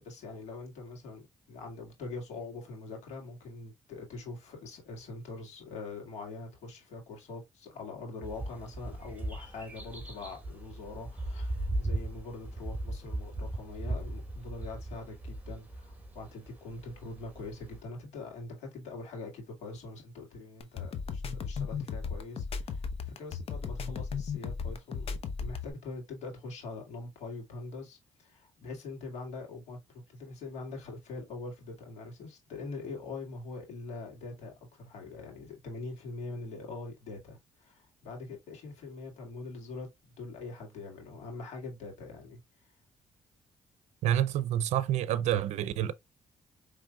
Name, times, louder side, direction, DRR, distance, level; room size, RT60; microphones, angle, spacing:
voice 1, 0.0-42.4, left 3 dB, 75° left, 1.9 m, -43 dB
sound 1, 8.2-17.8, right 1 dB, 15° right, 1.7 m, -38 dB
sound 2, 20.6-25.7, left 5 dB, 60° left, 0.8 m, -35 dB
voice 2, 44.0-45.9, right 11 dB, 75° right, 0.5 m, -28 dB
5.0 x 3.2 x 2.3 m
supercardioid pair, 70°, 12 cm